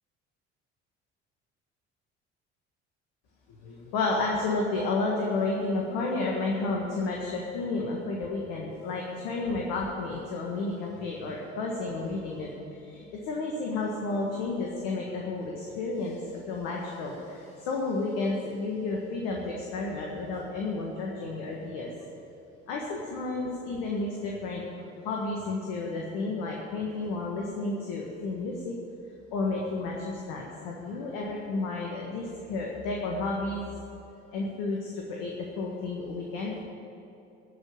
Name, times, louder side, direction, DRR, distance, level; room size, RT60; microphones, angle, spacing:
voice 1, 3.5-21.9 22.7-28.8 29.3-33.6 34.3-36.6, left 3 dB, 75° left, -1 dB, 1.6 m, -31 dB
15.0 x 5.3 x 8.9 m, 2.9 s
hypercardioid pair, 55°, 33 cm